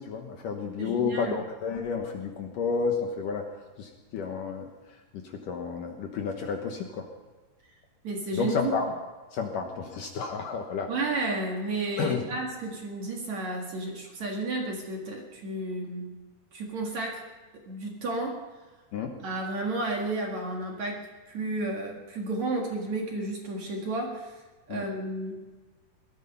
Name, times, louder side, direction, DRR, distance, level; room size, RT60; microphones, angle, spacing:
voice 1, 0.0-3.5 3.8-7.1 8.3-8.9 9.3-10.9 12.0-12.3 18.9-19.2 24.7-24.9, left 5 dB, 65° left, 3 dB, 2.4 m, -31 dB
voice 2, 0.8-1.4 8.0-8.7 10.9-16.1 16.5-17.3 17.7-18.4 19.2-25.4, right 2 dB, 50° right, 0 dB, 2.6 m, -32 dB
19.5 x 13.0 x 5.5 m, 1.3 s
omnidirectional pair, 4.8 m